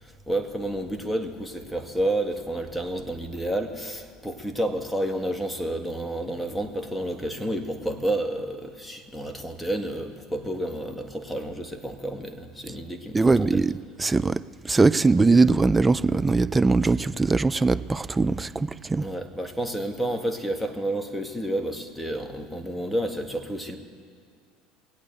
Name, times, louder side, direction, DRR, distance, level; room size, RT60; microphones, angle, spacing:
voice 1, 0.0-13.6 19.0-23.8, right 1 dB, 5° left, 1.8 m, -30 dB
voice 2, 13.1-13.7 14.0-19.1, right 3 dB, 15° right, 0.4 m, -21 dB
20.5 x 8.7 x 7.9 m
hypercardioid pair, 75°, 0 cm